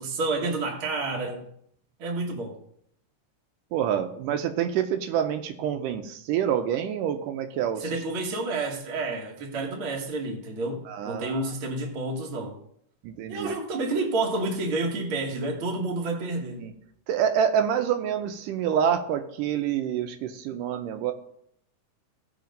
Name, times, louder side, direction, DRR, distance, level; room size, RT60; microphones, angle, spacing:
voice 1, 0.0-1.5 2.0-2.6 7.8-12.6 13.3-16.6, right 2 dB, 55° right, -1 dB, 1.7 m, -29 dB
voice 2, 3.7-7.9 10.9-11.5 13.0-13.5 16.6-16.7 17.1-21.1, right 9 dB, 85° right, 6 dB, 2.2 m, -27 dB
15.5 x 5.1 x 5.2 m, 0.70 s
omnidirectional pair, 3.7 m